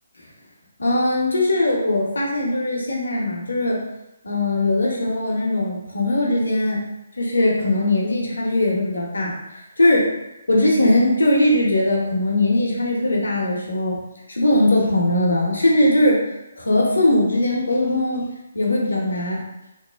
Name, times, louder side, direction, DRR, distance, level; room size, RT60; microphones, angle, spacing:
voice 1, 0.8-3.8 4.2-6.8 7.2-10.1 10.5-14.0 14.3-16.2 16.6-18.3 18.5-19.4, left 1 dB, 75° left, -2 dB, 0.7 m, -20 dB
3.0 x 2.0 x 2.2 m, 0.91 s
figure-of-eight pair, 140°, 0 cm